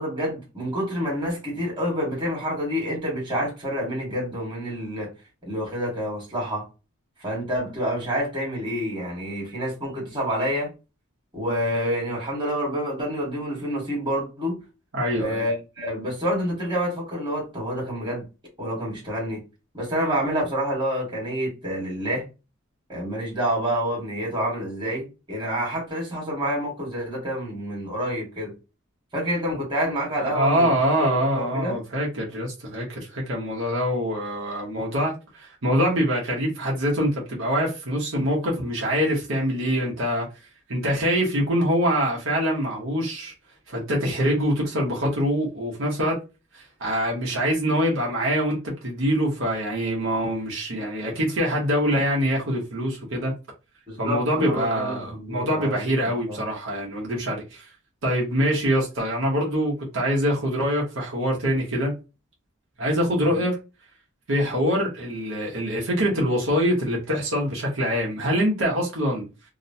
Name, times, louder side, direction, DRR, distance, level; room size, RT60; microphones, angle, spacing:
voice 1, 0.0-5.1 5.4-6.7 7.2-10.7 11.3-14.6 15.2-18.2 18.6-19.4 19.7-22.2 22.9-28.5 29.1-30.7 31.0-31.8 53.9-56.0 56.3-56.4 63.2-63.4, equal, 20° right, 1.4 m, -28 dB
voice 2, 14.9-15.4 30.2-40.3 40.7-43.3 43.7-46.2 46.5-53.3 54.0-57.7 58.0-62.0 62.8-63.6 64.3-69.3, equal, 70° right, 0.9 m, -24 dB
2.9 x 2.0 x 2.6 m
head